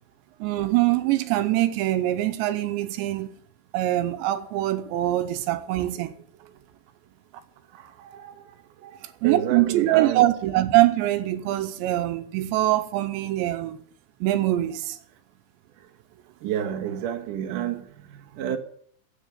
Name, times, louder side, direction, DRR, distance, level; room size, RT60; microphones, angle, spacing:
voice 1, 0.4-3.3 3.7-6.1 6.4-6.5 9.2-13.8 14.2-15.0, right 15 dB, 85° right, 3.1 m, -23 dB
voice 2, 7.7-8.6 8.8-10.2 15.8-15.9 16.4-18.6, right 10 dB, 65° right, 2.3 m, -31 dB
9.9 x 8.3 x 9.3 m
omnidirectional pair, 5.1 m